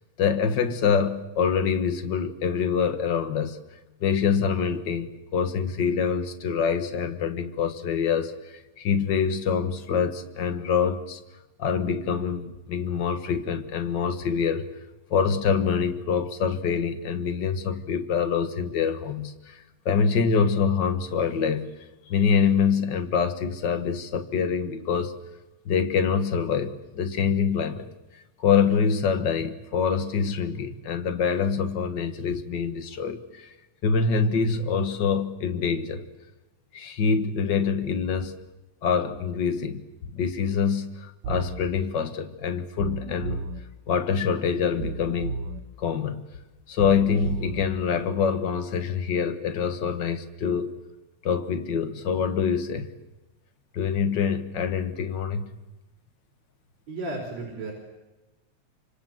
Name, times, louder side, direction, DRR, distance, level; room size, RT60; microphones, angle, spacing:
voice 1, 0.2-3.6 4.0-11.2 11.6-14.6 15.1-21.7 22.1-25.1 25.6-27.8 28.4-33.5 33.8-36.0 36.7-38.4 38.8-39.8 40.1-43.4 43.9-45.3 45.8-46.2 46.7-50.7 51.2-52.9 53.7-55.5, left 6 dB, 50° left, 1.3 m, -25 dB
sound 1, 41.2-41.6 42.8-43.6 44.8-45.6 46.8-47.6, right 4 dB, 75° right, 3.0 m, -33 dB
voice 2, 56.9-57.7, right 2 dB, 50° right, 5.4 m, -33 dB
26.5 x 26.0 x 7.5 m
omnidirectional pair, 4.0 m